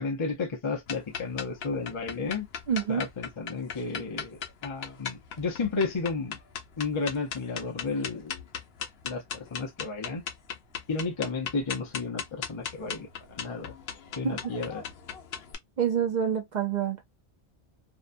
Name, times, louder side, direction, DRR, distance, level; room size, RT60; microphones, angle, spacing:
voice 1, 0.0-2.5 2.9-6.4 6.8-8.4 9.0-10.2 10.9-13.7 14.2-14.8, left 4 dB, 35° left, 0.5 m, -32 dB
sound 1, 0.9-15.5, left 7 dB, 65° left, 0.8 m, -38 dB
voice 2, 2.7-3.0 14.2-14.4 15.8-17.0, right 8 dB, 55° right, 0.5 m, -27 dB
2.7 x 2.1 x 2.5 m
omnidirectional pair, 1.1 m